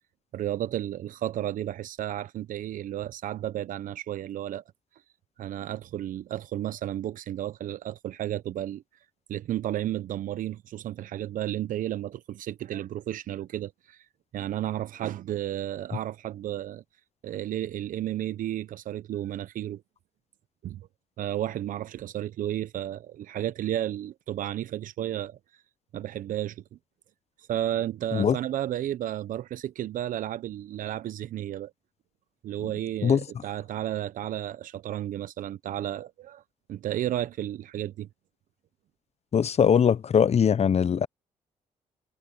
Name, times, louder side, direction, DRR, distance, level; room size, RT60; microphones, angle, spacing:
voice 1, 0.3-4.6 5.4-8.8 9.3-14.0 14.3-16.8 17.2-19.8 20.6-20.9 21.2-25.4 25.9-26.6 27.5-31.7 32.4-36.4 36.7-38.1, right 12 dB, 65° right, 1.0 m, -32 dB
voice 2, 39.3-41.1, left 7 dB, 45° left, 0.9 m, -21 dB
hypercardioid pair, 50°, 15 cm